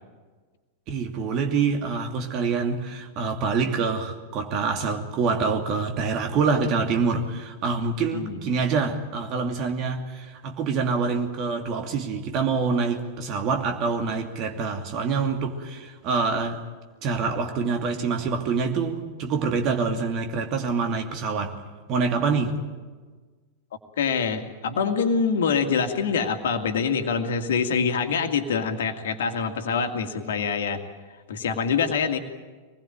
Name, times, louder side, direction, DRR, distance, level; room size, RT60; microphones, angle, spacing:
voice 1, 0.9-16.6 17.0-21.6 21.9-22.6, right 5 dB, 40° right, 4 dB, 2.7 m, -26 dB
voice 2, 24.0-30.8 31.3-32.2, left 6 dB, 60° left, 6 dB, 2.1 m, -25 dB
24.5 x 20.0 x 9.0 m, 1.4 s
figure-of-eight pair, 90°, 0 cm